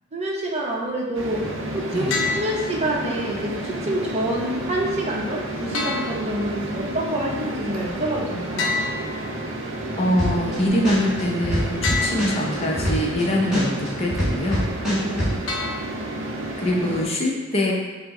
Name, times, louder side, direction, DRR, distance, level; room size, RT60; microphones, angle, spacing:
voice 1, 0.1-1.4 1.7-8.7 14.8-15.6, right 1 dB, 35° right, -3 dB, 0.7 m, -27 dB
sound 1, 1.1-17.0, right 1 dB, 80° right, 0.6 m, -31 dB
sound 2, 2.1-3.1 5.7-6.8 8.6-9.8 11.8-12.8 15.5-16.4, left 4 dB, 70° left, 0.6 m, -29 dB
voice 2, 10.0-14.7 16.6-17.7, left 1 dB, 30° left, -2 dB, 0.6 m, -24 dB
sound 3, 10.2-10.5 10.8-13.2 13.5-15.3, equal, ahead, 1.3 m, -23 dB
5.6 x 2.1 x 3.6 m, 1.4 s
head